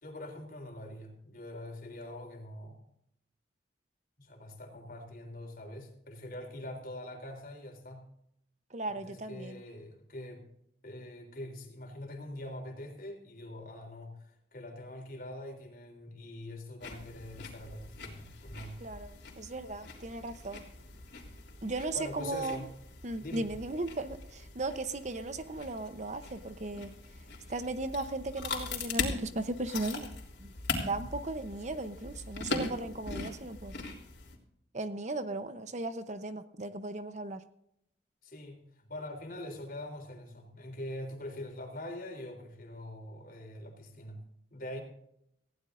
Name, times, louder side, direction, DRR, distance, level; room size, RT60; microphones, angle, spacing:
voice 1, 0.0-2.8 4.2-8.1 8.9-10.4 10.8-18.8 21.9-22.7 23.2-23.5 30.8-31.0 38.2-44.2 44.5-44.8, left 1 dB, 50° left, 3 dB, 3.6 m, -44 dB
voice 2, 8.7-9.6 18.8-20.6 21.6-22.7 23.0-26.9 27.5-30.5 30.8-33.7 34.7-37.4, right 2 dB, 40° right, 10 dB, 0.8 m, -37 dB
sound 1, 16.8-34.4, left 4 dB, 75° left, 3.4 m, -41 dB
19.5 x 15.5 x 2.6 m, 0.75 s
head